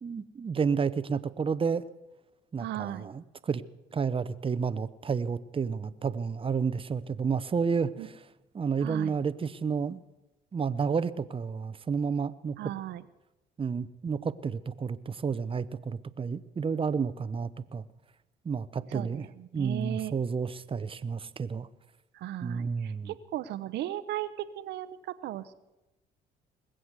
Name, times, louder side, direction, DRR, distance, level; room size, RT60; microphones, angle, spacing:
voice 1, 0.0-1.8 2.5-3.6 3.9-8.1 8.5-10.0 10.5-12.6 13.6-17.8 18.4-19.3 19.5-21.7 22.4-23.1, right 5 dB, 30° right, 15 dB, 0.8 m, -31 dB
voice 2, 2.6-3.1 8.0-8.1 8.8-9.1 12.6-13.0 18.9-20.1 22.1-25.5, right 13 dB, 75° right, 14 dB, 0.9 m, -36 dB
20.0 x 7.8 x 8.1 m, 0.99 s
supercardioid pair, 65°, 18 cm